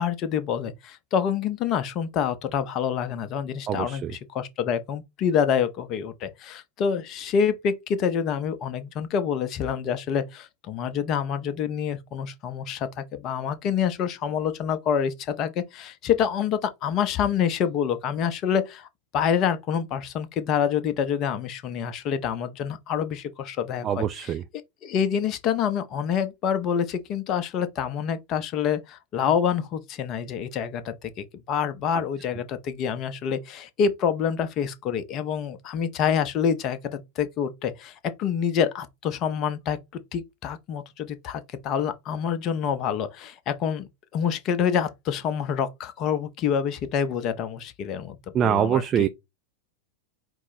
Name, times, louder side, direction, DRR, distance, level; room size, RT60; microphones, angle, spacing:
voice 1, 0.0-18.9 19.1-24.4 24.8-39.8 40.1-49.1, left 7 dB, 35° left, 0.6 m, -27 dB
voice 2, 3.7-4.1 23.8-24.4 48.3-49.1, right 9 dB, 25° right, 0.3 m, -24 dB
4.5 x 2.0 x 4.0 m
figure-of-eight pair, 90°, 0 cm